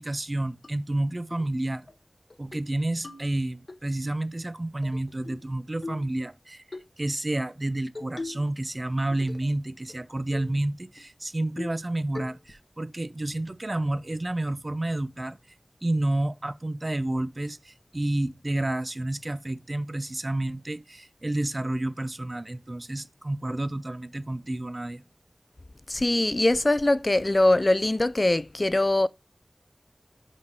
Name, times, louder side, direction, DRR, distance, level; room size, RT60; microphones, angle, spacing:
voice 1, 0.0-1.9 2.4-15.4 15.8-25.0, right 1 dB, 45° right, 0.6 m, -30 dB
sound 1, 0.6-0.7 1.3-1.5 1.9-2.0 2.3-2.7 3.0-3.8 4.8-5.5 5.8-6.1 6.7-6.9 8.0-8.5 8.9-9.5 9.9-10.0 10.3-10.6 11.0-11.1 11.6-11.9 12.2-12.6, left 2 dB, 75° left, 1.0 m, -40 dB
voice 2, 25.9-29.1, left 2 dB, 45° left, 0.4 m, -22 dB
5.4 x 5.2 x 4.8 m
wide cardioid pair, 55°, 0 cm